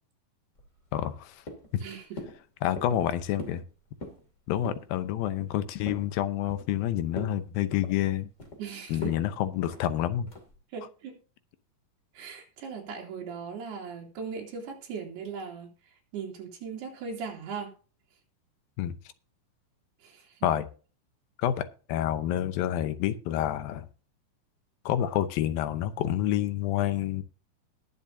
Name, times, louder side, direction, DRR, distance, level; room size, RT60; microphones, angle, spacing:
sound 1, 0.5-1.2 1.5-1.8 2.2-2.4 2.8-3.1 3.4-3.6 3.9-4.2 4.6-4.9 5.2-6.1 6.5-6.8 7.1-7.4 7.7-8.6 9.0-9.2 9.6-9.8 10.3-10.6, left 2 dB, 25° left, 2.2 m, -41 dB
voice 1, 0.9-1.4 1.7-1.8 2.6-3.6 4.5-8.3 8.9-10.3 18.8-18.9 20.4-20.7 21.4-23.9 24.9-27.2, left 11 dB, 75° left, 2.4 m, -28 dB
voice 2, 1.8-2.2 8.6-9.1 10.7-11.2 12.1-15.7 16.1-17.7 20.0-20.3, right 6 dB, 80° right, 4.8 m, -38 dB
20.0 x 7.2 x 2.7 m
omnidirectional pair, 4.6 m